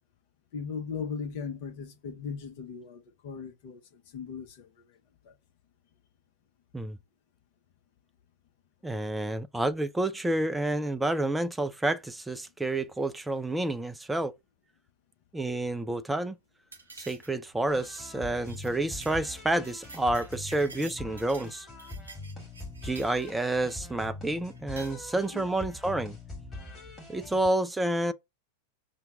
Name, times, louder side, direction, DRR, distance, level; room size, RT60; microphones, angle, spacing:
voice 1, 0.5-4.7 5.2-5.3 25.3-25.4 26.7-27.0, left 6 dB, 50° left, 0.9 m, -38 dB
voice 2, 8.8-14.3 15.3-16.4 17.0-21.7 22.8-26.2 27.1-28.1, right 2 dB, 5° right, 0.4 m, -29 dB
sound 1, 16.7-17.5 17.8-18.1 18.4-18.7 19.0-19.2 19.5-21.5 21.8-23.6 24.5-24.9, right 3 dB, 75° right, 0.9 m, -49 dB
sound 2, 17.7-27.5, left 2 dB, 15° left, 1.6 m, -43 dB
5.6 x 2.3 x 3.8 m
figure-of-eight pair, 90°, 0 cm